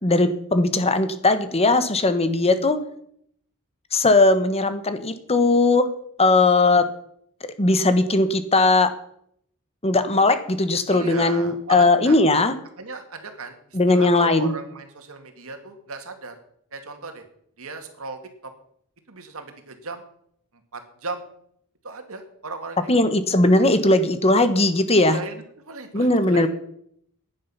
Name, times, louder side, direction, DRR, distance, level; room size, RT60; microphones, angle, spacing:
voice 1, 0.0-2.8 3.9-5.9 6.2-6.9 7.6-8.9 9.8-12.5 13.7-14.5 22.9-25.2 25.9-26.5, left 2 dB, 30° left, 10 dB, 1.2 m, -18 dB
voice 2, 10.9-12.2 12.8-16.4 16.7-17.2 17.6-18.5 19.1-20.0 20.7-21.2 21.8-23.0 24.9-26.5, right 3 dB, 70° right, 6 dB, 2.2 m, -36 dB
16.0 x 10.0 x 5.7 m, 0.69 s
head